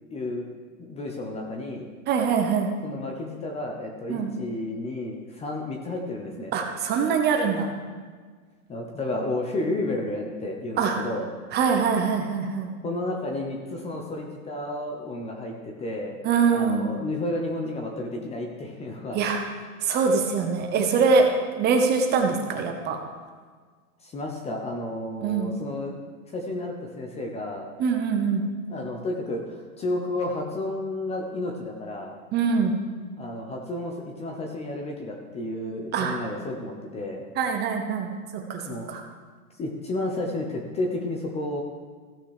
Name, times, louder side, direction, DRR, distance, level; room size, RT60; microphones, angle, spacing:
voice 1, 0.1-0.4 0.8-1.9 2.8-6.5 8.7-11.3 12.8-16.2 16.5-19.2 24.0-26.0 26.3-27.7 28.7-32.1 33.2-37.2 38.6-38.9 39.6-41.6, left 2 dB, 15° left, 1 dB, 0.8 m, -32 dB
voice 2, 2.1-2.7 4.1-4.3 6.5-7.7 10.8-11.0 11.5-12.7 16.2-16.9 19.1-19.4 19.8-21.2 21.6-23.0 25.2-25.5 27.8-28.4 32.3-32.7 35.9-36.2 37.4-39.0, right 5 dB, 25° right, 3 dB, 1.0 m, -23 dB
15.0 x 6.0 x 4.9 m, 1.5 s
hypercardioid pair, 145°, 44 cm